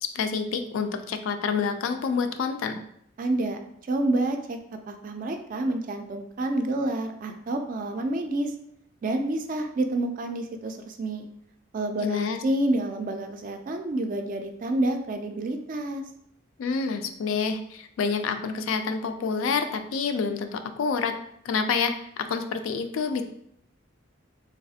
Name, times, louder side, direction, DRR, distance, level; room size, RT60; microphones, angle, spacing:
voice 1, 0.0-2.8 12.0-12.4 16.6-21.1 21.4-23.2, left 5 dB, 80° left, 8 dB, 0.3 m, -28 dB
voice 2, 3.2-3.6 3.9-4.6 4.9-8.5 9.0-11.2 11.7-16.0, right 1 dB, 40° right, 5 dB, 0.3 m, -28 dB
3.1 x 2.4 x 2.7 m, 0.72 s
head